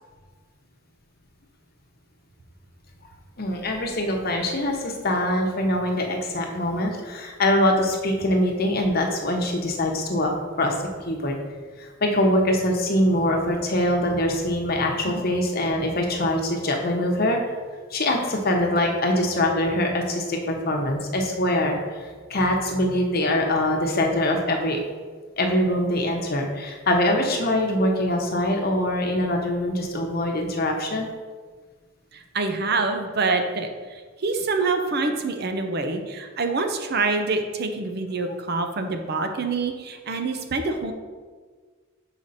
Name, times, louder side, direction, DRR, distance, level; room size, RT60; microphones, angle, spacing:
voice 1, 3.4-10.3 10.6-10.7 11.0-11.3 11.8-17.4 17.9-24.8 25.4-31.1, left 1 dB, 50° left, 2 dB, 1.0 m, -23 dB
voice 2, 32.1-40.9, right 3 dB, 50° right, 6 dB, 0.7 m, -26 dB
6.4 x 5.0 x 4.2 m, 1.5 s
head